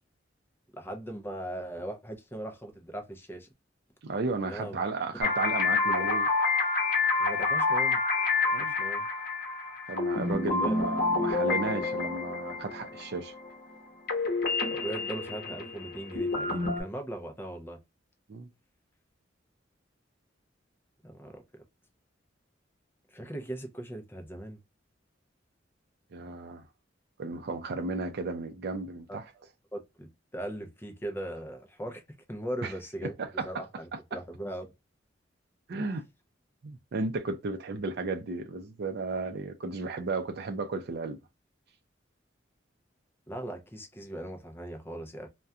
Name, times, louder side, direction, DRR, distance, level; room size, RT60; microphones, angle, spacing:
voice 1, 0.7-3.5 4.5-4.8 5.8-6.2 7.2-8.0 8.4-9.1 10.6-10.8 14.6-17.8 21.0-21.6 23.1-24.6 29.1-29.2 29.7-32.0 32.3-33.1 33.4-34.7 43.3-45.3, right 1 dB, 10° left, 0.5 m, -39 dB
voice 2, 4.0-6.3 8.5-8.7 9.9-13.3 18.3-18.5 26.1-26.6 27.2-29.2 32.6-32.7 33.4-33.6 35.7-36.0 36.6-41.2, right 3 dB, 55° right, 0.4 m, -34 dB
sound 1, 5.2-13.8 14.1-16.8, left 3 dB, 50° left, 0.8 m, -28 dB
2.4 x 2.1 x 2.6 m
head